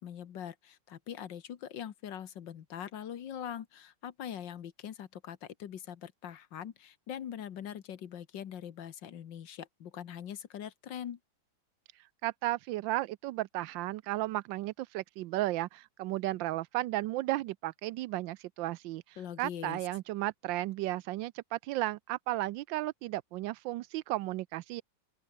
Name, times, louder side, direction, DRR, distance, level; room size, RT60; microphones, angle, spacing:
voice 1, 0.0-11.2 19.2-19.8, left 9 dB, 70° left, 1.9 m, -42 dB
voice 2, 12.2-19.0 19.4-24.8, right 17 dB, 80° right, 1.3 m, -34 dB
open air
omnidirectional pair, 2.1 m